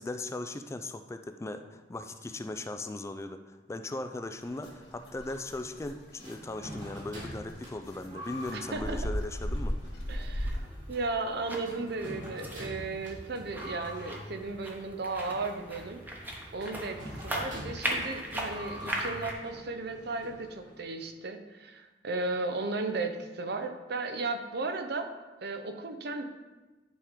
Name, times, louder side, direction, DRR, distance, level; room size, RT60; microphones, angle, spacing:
voice 1, 0.0-9.8, left 2 dB, 15° left, 8 dB, 0.3 m, -38 dB
sound 1, 4.4-10.6, equal, 90° left, 2.0 m, -37 dB
sound 2, 6.2-20.9, equal, 45° right, 2.6 m, -46 dB
voice 2, 8.5-9.0 10.1-10.6 10.9-16.0 16.5-25.1 25.4-26.2, right 3 dB, 65° right, 7 dB, 0.7 m, -35 dB
sound 3, 10.1-19.3, right 1 dB, 10° right, 1.0 m, -39 dB
10.0 x 3.6 x 5.0 m, 1.2 s
head